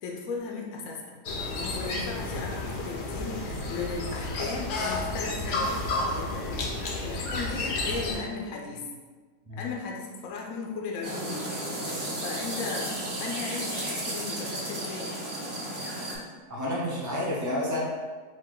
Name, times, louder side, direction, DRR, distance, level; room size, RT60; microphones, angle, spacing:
voice 1, 0.0-1.1 1.6-3.4 3.7-8.8 9.6-11.4 12.2-12.9 13.2-15.1, left 4 dB, 65° left, 0 dB, 0.9 m, -36 dB
sound 1, 1.3-8.2, left 2 dB, 80° left, 1.3 m, -31 dB
sound 2, 11.0-16.2, right 1 dB, 40° right, 1.3 m, -33 dB
voice 2, 16.5-17.8, left 1 dB, 20° right, -4 dB, 0.5 m, -30 dB
5.2 x 2.5 x 3.8 m, 1.4 s
omnidirectional pair, 1.7 m